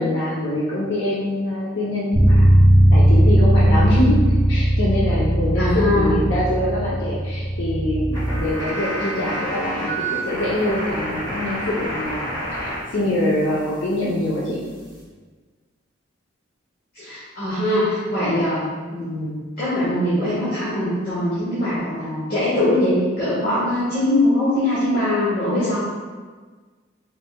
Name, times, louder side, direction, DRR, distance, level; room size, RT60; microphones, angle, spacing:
voice 1, 0.0-2.6 2.9-4.2 4.5-14.6, left 1 dB, 65° left, -7 dB, 0.7 m, -24 dB
Bass guitar, 2.1-8.4, equal, 15° right, 1.3 m, -17 dB
voice 2, 5.5-6.1 16.9-25.8, left 1 dB, 50° left, -12 dB, 1.5 m, -22 dB
sound 1, 8.1-12.8 13.0-15.0, right 1 dB, 25° left, 1.2 m, -30 dB
5.3 x 4.2 x 2.3 m, 1.5 s
head